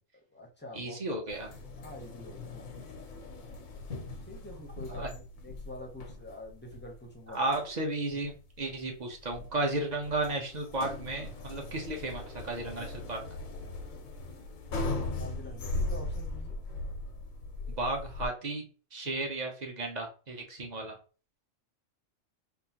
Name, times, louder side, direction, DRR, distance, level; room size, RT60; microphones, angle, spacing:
voice 1, 0.1-1.2 1.8-2.7 4.3-7.4 15.2-16.6, left 1 dB, 10° left, 1 dB, 0.5 m, -46 dB
voice 2, 0.7-1.5 4.9-5.1 7.3-13.2 17.8-20.9, right 2 dB, 40° right, 2 dB, 0.7 m, -34 dB
sound 1, 1.3-18.3, left 2 dB, 90° left, 1.1 m, -39 dB
3.7 x 2.5 x 2.8 m, 0.36 s
omnidirectional pair, 1.4 m